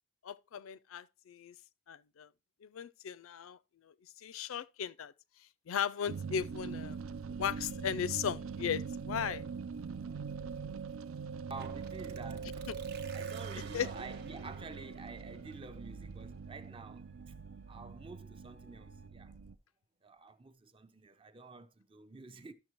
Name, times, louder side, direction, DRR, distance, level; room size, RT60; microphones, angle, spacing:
voice 1, 0.2-1.5 1.9-2.3 2.6-3.6 4.2-5.1 5.7-7.0 7.4-9.4 13.7-13.9, left 8 dB, 80° left, 0.4 m, -36 dB
sound 1, 6.1-19.5, right 5 dB, 80° right, 0.5 m, -42 dB
voice 2, 11.5-12.7 13.0-17.3 17.7-19.3 20.0-22.5, right 3 dB, 25° right, 0.5 m, -49 dB
sound 2, 11.5-19.1, right 5 dB, 50° right, 0.9 m, -55 dB
12.5 x 6.6 x 3.0 m
head